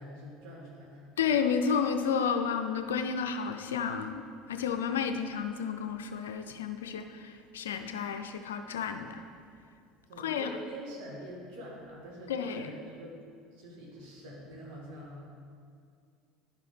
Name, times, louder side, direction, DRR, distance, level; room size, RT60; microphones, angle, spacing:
voice 1, 0.0-1.1 10.1-13.2 13.5-15.2, equal, 70° right, -3 dB, 2.2 m, -45 dB
voice 2, 1.2-4.2 4.5-9.2 10.2-10.5 12.3-12.7, left 6 dB, 90° left, 6 dB, 0.4 m, -31 dB
10.5 x 4.9 x 5.1 m, 2.3 s
hypercardioid pair, 85°, 0 cm